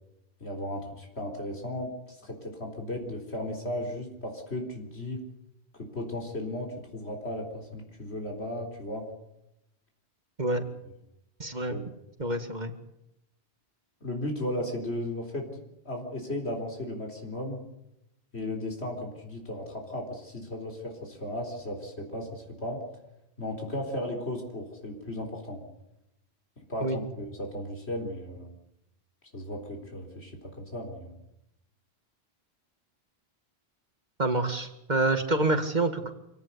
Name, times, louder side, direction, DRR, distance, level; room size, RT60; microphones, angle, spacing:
voice 1, 0.4-1.9 2.2-5.2 5.9-9.1 11.7-11.8 14.0-17.6 18.3-22.8 23.4-25.6 26.6-28.5 29.3-31.2, left 1 dB, 75° left, 2 dB, 4.3 m, -35 dB
voice 2, 11.4-11.8 12.2-12.7 26.8-27.0 34.2-36.1, right 2 dB, 40° right, 7 dB, 2.3 m, -27 dB
27.0 x 18.0 x 8.2 m, 0.85 s
omnidirectional pair, 1.1 m